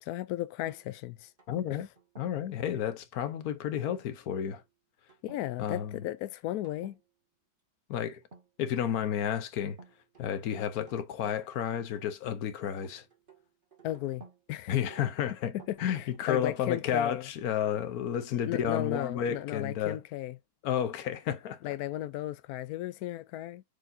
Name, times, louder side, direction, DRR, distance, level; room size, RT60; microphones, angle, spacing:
voice 1, 0.0-1.3 1.7-1.8 5.2-7.0 13.8-14.8 15.7-17.3 18.3-20.4 21.6-23.6, left 14 dB, 85° left, 0.8 m, -35 dB
sound 1, 0.7-2.5 3.7-4.0 4.4-4.6 5.1-5.5 5.8-6.2 6.6-7.0 8.2-9.0 9.8-11.5 11.8-14.4 14.9-16.4, right 4 dB, 25° right, 1.9 m, -55 dB
voice 2, 1.5-1.9 2.2-4.6 5.6-6.0 7.9-8.2 8.6-9.8 10.2-13.0 14.7-15.5 15.8-20.0 20.6-21.7, left 9 dB, 60° left, 1.0 m, -31 dB
7.8 x 4.5 x 2.7 m
omnidirectional pair, 2.2 m